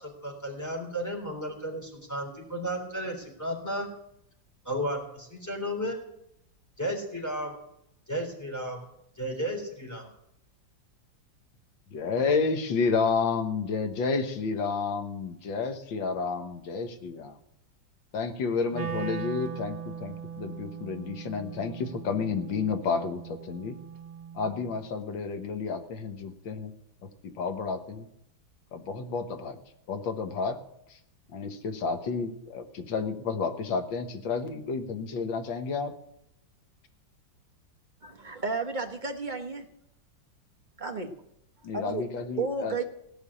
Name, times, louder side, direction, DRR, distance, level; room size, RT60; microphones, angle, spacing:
voice 1, 0.0-3.9 4.7-6.0 6.8-7.5 8.1-8.8 9.2-10.1, equal, 10° left, 0 dB, 3.3 m, -33 dB
voice 2, 11.9-17.4 18.1-23.8 24.4-26.7 27.0-28.1 28.7-29.6 29.9-30.6 30.9-31.0 31.3-35.9 41.6-42.8, left 5 dB, 80° left, 7 dB, 2.0 m, -31 dB
Wind instrument woodwind instrument, 18.7-24.8, right 7 dB, 65° right, 1.8 m, -39 dB
voice 3, 38.0-39.7 40.8-41.1 41.7-42.0 42.4-42.8, right 3 dB, 35° right, 5 dB, 0.9 m, -32 dB
17.0 x 5.7 x 9.8 m, 0.78 s
omnidirectional pair, 2.1 m